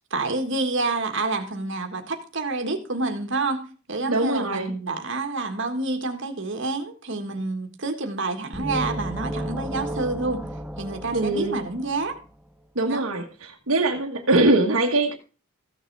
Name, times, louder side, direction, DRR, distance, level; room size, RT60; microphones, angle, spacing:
voice 1, 0.1-10.4 10.8-12.2 12.9-13.0, right 3 dB, 55° right, 1.6 m, -28 dB
voice 2, 4.1-4.7 11.1-11.6 12.7-15.1, right 2 dB, 70° right, 1.4 m, -22 dB
sound 1, 8.5-12.3, right 1 dB, 5° right, 0.6 m, -33 dB
14.5 x 6.8 x 4.6 m
head